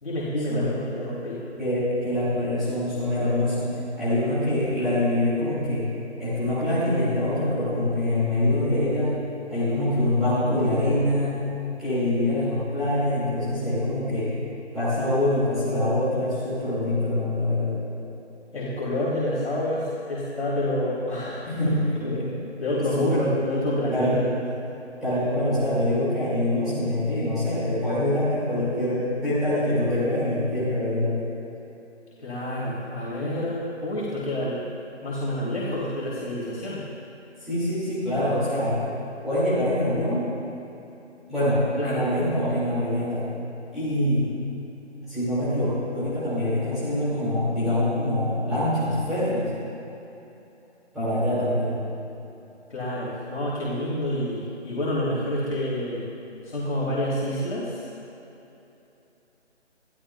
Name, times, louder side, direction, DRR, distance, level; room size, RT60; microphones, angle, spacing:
voice 1, 0.0-1.4 18.5-21.7 22.0-24.4 32.2-34.6 35.0-36.9 41.8-42.0 52.7-56.1 56.4-57.8, left 1 dB, 70° left, -7 dB, 3.2 m, -28 dB
voice 2, 1.6-3.7 4.0-5.9 6.2-9.2 9.5-11.4 11.8-14.3 14.7-17.8 21.5-21.9 22.9-23.3 23.9-24.1 25.0-31.1 37.4-38.8 39.2-40.3 41.3-43.2 43.7-44.3 45.1-49.5 50.9-51.8, left 1 dB, ahead, -14 dB, 2.1 m, -24 dB
23.0 x 13.5 x 2.3 m, 2.9 s
figure-of-eight pair, 170°, 35 cm